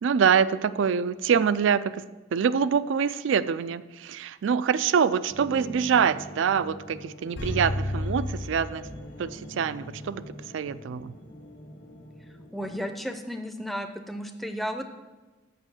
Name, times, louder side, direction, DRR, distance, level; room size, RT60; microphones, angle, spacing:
voice 1, 0.0-2.0 2.3-8.9 9.2-10.2 10.5-11.1, right 7 dB, 70° right, 16 dB, 0.3 m, -25 dB
sound 1, 5.3-12.9, equal, 40° left, 1.0 m, -44 dB
sound 2, 7.4-9.5 9.9-10.0, left 1 dB, 65° left, 1.0 m, -32 dB
voice 2, 12.5-14.9, equal, ahead, 6 dB, 0.5 m, -33 dB
6.7 x 6.2 x 7.2 m, 1.2 s
head